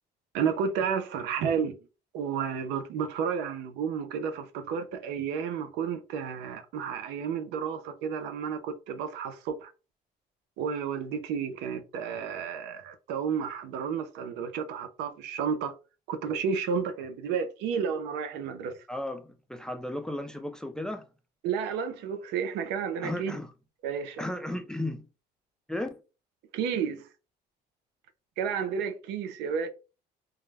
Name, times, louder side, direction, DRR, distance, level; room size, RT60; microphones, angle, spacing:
voice 1, 0.3-1.8 2.1-9.7 10.6-15.8 16.1-18.8 21.4-23.4 23.8-24.3 26.5-27.0 28.4-29.7, right 7 dB, 90° right, 0.5 m, -31 dB
voice 2, 18.9-21.1 23.0-23.5 24.2-25.0 25.7-26.0, left 1 dB, 5° left, 0.3 m, -34 dB
2.2 x 2.0 x 3.2 m
cardioid pair, 110°, 17 cm